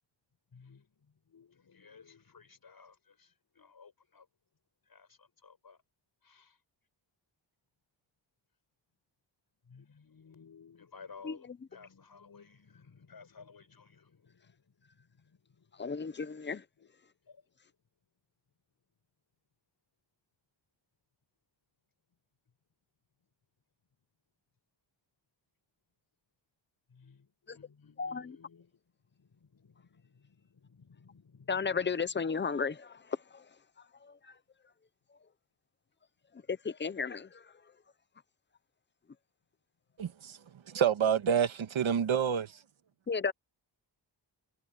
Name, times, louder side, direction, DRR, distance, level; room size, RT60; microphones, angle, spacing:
voice 1, 0.5-4.3 4.9-5.8 6.2-6.6 9.6-15.8 16.8-16.9 17.3-17.4 26.9-28.8 29.1-31.8, left 5 dB, 50° left, 6.9 m, -57 dB
voice 2, 11.2-11.6 15.8-16.6 27.5-27.6 28.0-28.4 31.5-33.5 34.0-34.4 36.3-37.5 43.1-43.3, left 5 dB, 25° left, 0.7 m, -34 dB
voice 3, 40.0-40.4 40.7-42.5, right 8 dB, 80° right, 1.8 m, -28 dB
wide cardioid pair, 175°, 47 cm